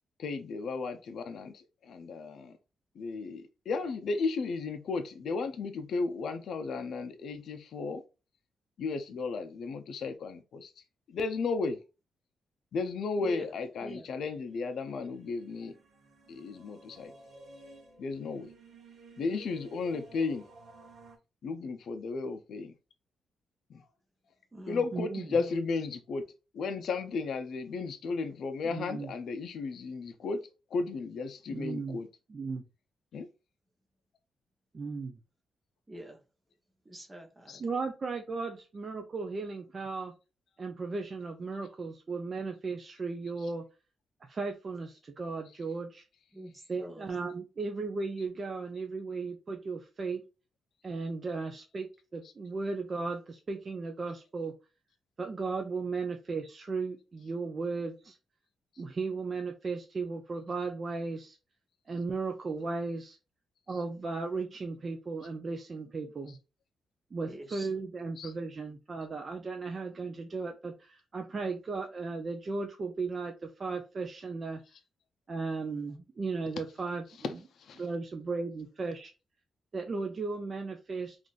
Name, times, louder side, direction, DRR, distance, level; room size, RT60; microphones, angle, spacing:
voice 1, 0.2-2.6 2.9-8.0 8.8-11.8 12.7-15.8 16.3-17.1 18.0-18.5 19.2-20.5 21.4-22.7 23.7-23.8 24.7-32.1 33.1-33.3 37.5-37.6 43.4-43.5 45.4-45.6 48.2-48.3 52.2-52.3 58.7-58.8 63.7-63.8 66.3-66.4 68.2-68.3 74.7-74.8 77.1-78.0, left 4 dB, 65° left, 0.4 m, -35 dB
voice 2, 13.8-14.1 24.5-24.9 25.3-25.6 35.9-36.2 36.8-37.6 46.3-47.1 67.2-67.8, right 1 dB, 20° right, 0.9 m, -45 dB
sound 1, 13.9-21.2, right 2 dB, 55° right, 0.8 m, -54 dB
voice 3, 24.9-25.3 28.6-29.1 31.5-32.0 32.3-32.6 34.7-35.2 37.6-40.1 40.6-43.6 44.3-46.0 46.7-50.2 50.8-54.5 55.2-58.2 58.8-61.4 61.9-63.2 63.7-66.4 67.1-74.6 75.3-77.0 77.8-79.1 79.7-81.2, right 4 dB, 35° right, 0.4 m, -36 dB
3.7 x 2.5 x 2.4 m
cardioid pair, 135°, 0 cm